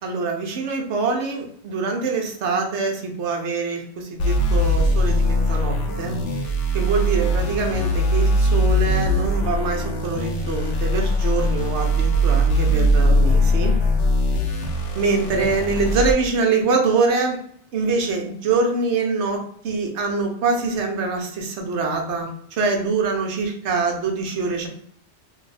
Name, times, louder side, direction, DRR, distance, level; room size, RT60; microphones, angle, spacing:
voice 1, 0.0-6.2 6.7-13.7 15.0-17.4 17.7-24.7, right 4 dB, 80° right, 2 dB, 1.0 m, -24 dB
sound 1, 4.2-16.1, equal, 90° left, 1.0 m, -20 dB
2.6 x 2.4 x 4.0 m, 0.65 s
omnidirectional pair, 1.2 m